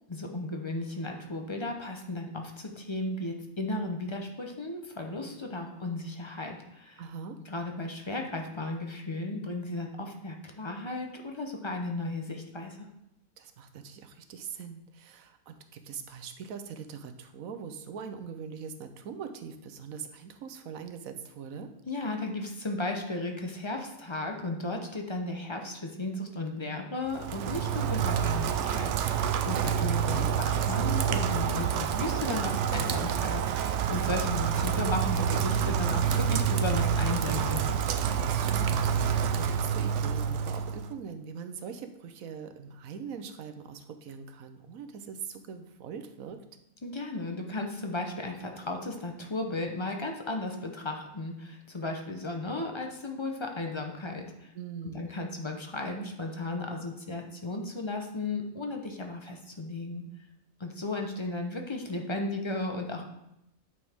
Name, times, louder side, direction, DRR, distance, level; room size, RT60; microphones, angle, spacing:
voice 1, 0.1-7.0 7.5-12.9 21.9-37.7 46.8-54.5 54.9-60.0 60.6-63.0, left 2 dB, 25° left, 3 dB, 0.7 m, -35 dB
voice 2, 7.0-7.4 13.4-21.7 30.1-30.6 38.2-46.4 54.5-55.1, right 6 dB, 85° right, 8 dB, 1.2 m, -42 dB
Rain, 27.1-40.9, right 8 dB, 70° right, 0.8 m, -28 dB
8.7 x 6.2 x 3.5 m, 0.83 s
omnidirectional pair, 1.4 m